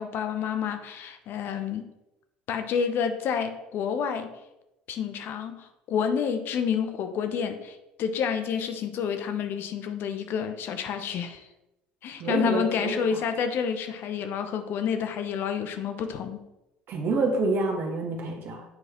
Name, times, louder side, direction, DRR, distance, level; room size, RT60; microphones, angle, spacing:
voice 1, 0.0-1.9 2.5-4.3 4.9-11.5 12.0-16.4, left 7 dB, 50° left, 8 dB, 0.7 m, -29 dB
voice 2, 12.2-13.2 16.9-18.6, right 3 dB, 50° right, 2 dB, 1.3 m, -27 dB
8.5 x 4.8 x 3.0 m, 0.94 s
figure-of-eight pair, 65°, 5 cm